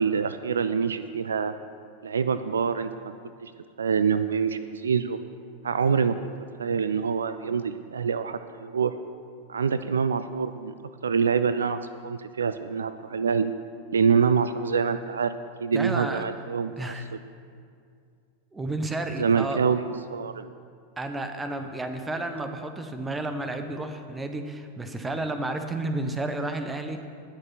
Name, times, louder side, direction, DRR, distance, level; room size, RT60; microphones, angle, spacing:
voice 1, 0.0-1.5 2.0-3.1 3.4-3.5 3.8-5.2 5.6-6.2 6.6-8.9 9.5-10.7 11.0-13.5 13.9-15.3 15.6-16.9 19.2-20.5, right 6 dB, 70° right, 12 dB, 0.4 m, -25 dB
voice 2, 15.7-16.2 16.8-17.1 18.5-19.6 21.0-27.0, right 2 dB, 10° right, 7 dB, 1.1 m, -31 dB
19.0 x 6.6 x 6.0 m, 2.3 s
figure-of-eight pair, 90°, 0 cm